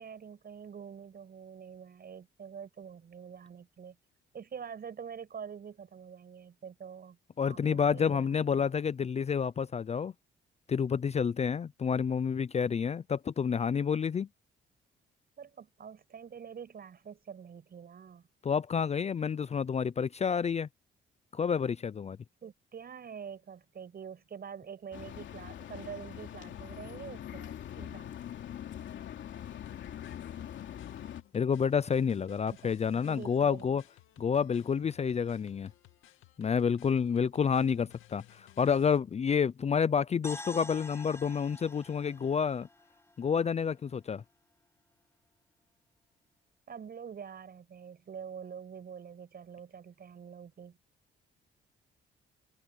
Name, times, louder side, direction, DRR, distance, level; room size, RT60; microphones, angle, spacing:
voice 1, 0.0-4.0 4.3-7.2 7.4-8.6 15.4-18.3 22.4-28.1 32.5-33.8 46.7-50.8, right 7 dB, 50° right, 7.5 m, -46 dB
voice 2, 7.4-10.1 10.7-14.3 18.4-20.7 21.3-22.2 31.3-33.8 34.2-35.7 36.4-42.7 43.2-44.2, left 6 dB, 35° left, 0.5 m, -29 dB
sound 1, 24.9-31.2, left 10 dB, 70° left, 3.0 m, -43 dB
sound 2, 29.6-39.0, left 15 dB, 90° left, 2.5 m, -59 dB
sound 3, 40.2-44.2, left 2 dB, 15° left, 4.6 m, -48 dB
cardioid pair, 90°, 20 cm